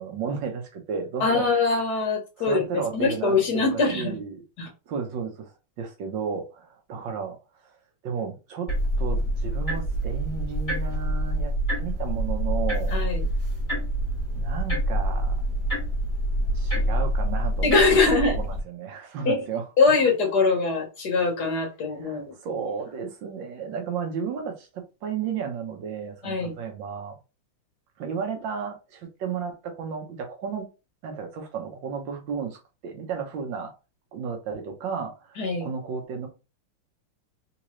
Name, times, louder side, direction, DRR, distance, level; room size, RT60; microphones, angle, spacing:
voice 1, 0.0-1.5 2.4-4.4 4.9-5.5 5.8-7.8 8.0-8.7 9.0-13.0 14.3-15.3 16.5-19.6 21.9-27.1 28.0-30.7 31.0-32.6 32.8-33.7 34.1-36.3, right 6 dB, 65° right, 1.4 m, -33 dB
voice 2, 1.2-2.6 2.9-4.2 4.6-4.7 12.9-13.3 17.6-18.4 19.2-19.4 19.8-22.2 26.2-26.5 35.4-35.7, left 4 dB, 60° left, 1.2 m, -22 dB
sound 1, 8.7-18.6, right 1 dB, 25° left, 1.6 m, -26 dB
3.7 x 2.8 x 3.0 m
omnidirectional pair, 2.4 m